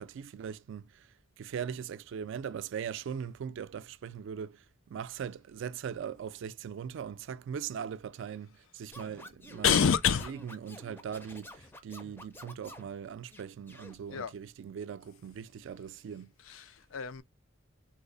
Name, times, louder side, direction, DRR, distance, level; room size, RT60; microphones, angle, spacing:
voice 1, 0.0-9.8 10.4-16.3, right 7 dB, 65° right, 0.3 m, -40 dB
Scratching (performance technique), 8.9-12.9 13.3-13.9, left 1 dB, 10° left, 0.4 m, -50 dB
voice 2, 9.6-10.3 14.1-14.3 16.4-17.2, left 7 dB, 75° left, 0.4 m, -27 dB
3.0 x 2.0 x 3.7 m
head